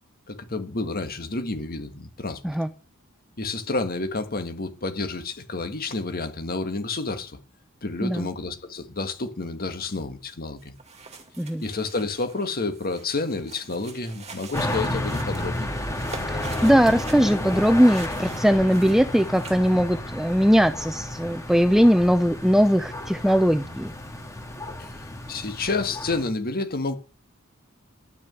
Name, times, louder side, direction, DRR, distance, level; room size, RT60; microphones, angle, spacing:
voice 1, 0.3-2.4 3.4-7.4 7.8-10.7 11.6-15.7 24.8-27.0, left 3 dB, 45° left, 1.7 m, -30 dB
sound 1, 10.6-19.7, right 4 dB, 30° right, 2.4 m, -44 dB
sound 2, 14.5-26.3, left 1 dB, 15° left, 2.4 m, -32 dB
voice 2, 16.6-23.9, equal, ahead, 0.5 m, -20 dB
12.0 x 6.3 x 9.1 m
head